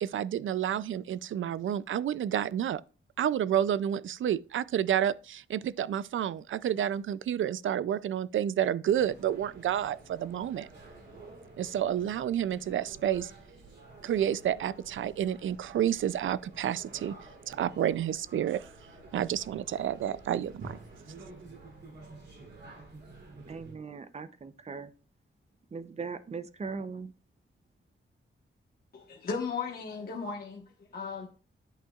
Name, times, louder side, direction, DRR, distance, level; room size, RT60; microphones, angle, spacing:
voice 1, 0.0-2.8 3.2-10.7 11.6-13.3 14.0-17.1 17.5-18.7 19.1-20.8, right 10 dB, 75° right, 0.4 m, -30 dB
sound 1, 8.9-23.7, right 2 dB, 55° right, 3.2 m, -50 dB
voice 2, 23.5-24.9 25.7-27.1, right 5 dB, 30° right, 0.6 m, -39 dB
voice 3, 28.9-30.6 30.9-31.3, left 5 dB, 45° left, 1.3 m, -35 dB
10.0 x 8.5 x 2.4 m
wide cardioid pair, 165°, 21 cm